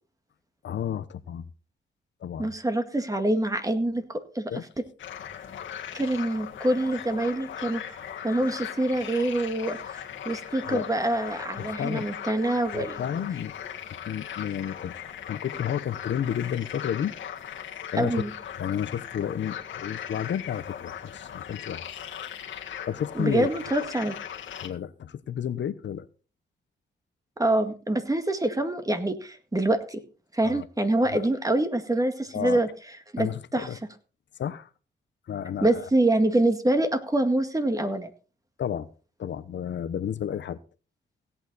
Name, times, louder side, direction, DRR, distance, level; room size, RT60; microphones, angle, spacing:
voice 1, 0.6-1.5 2.2-2.5 4.5-4.7 10.7-10.9 11.6-12.1 12.7-13.5 13.9-14.9 15.3-17.1 17.9-18.2 18.6-22.0 22.9-23.5 24.6-26.1 30.4-30.7 31.1-31.3 32.3-32.6 33.2-33.8 34.4-34.7 35.3-35.9 38.6-38.9 39.2-40.6, left 9 dB, 70° left, 0.9 m, -31 dB
voice 2, 2.4-4.5 5.9-8.0 8.2-13.2 17.9-18.3 23.2-24.2 27.4-30.0 30.3-32.7 33.1-33.8 35.6-38.1, right 1 dB, 15° right, 1.9 m, -26 dB
sound 1, 5.0-24.7, left 9 dB, 85° left, 1.8 m, -39 dB
17.0 x 8.9 x 4.1 m
cardioid pair, 80°, 20 cm